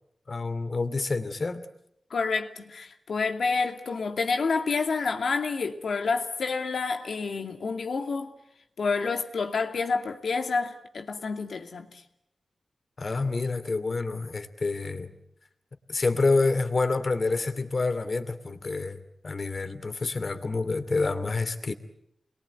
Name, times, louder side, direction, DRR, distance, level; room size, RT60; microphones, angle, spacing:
voice 1, 0.3-1.6 13.0-15.1 15.9-21.7, left 3 dB, 50° left, 2.6 m, -28 dB
voice 2, 2.1-8.3 8.8-11.9, left 4 dB, 90° left, 2.5 m, -28 dB
29.0 x 22.0 x 9.3 m
wide cardioid pair, 90°, 0 cm